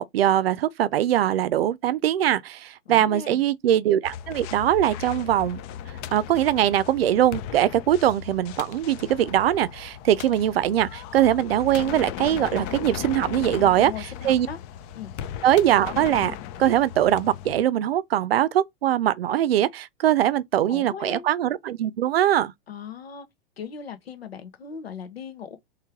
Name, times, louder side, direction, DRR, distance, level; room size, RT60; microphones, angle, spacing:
voice 1, 0.0-5.6 6.1-13.9 14.2-14.5 15.4-22.5, right 11 dB, 75° right, 0.6 m, -22 dB
voice 2, 2.9-3.4 13.6-14.6 15.0-15.1 20.7-21.3 22.7-23.3 23.6-25.6, left 7 dB, 85° left, 1.2 m, -38 dB
sound 1, 4.0-17.6, left 10 dB, 40° left, 0.5 m, -37 dB
3.2 x 3.2 x 3.6 m
hypercardioid pair, 110°, 30 cm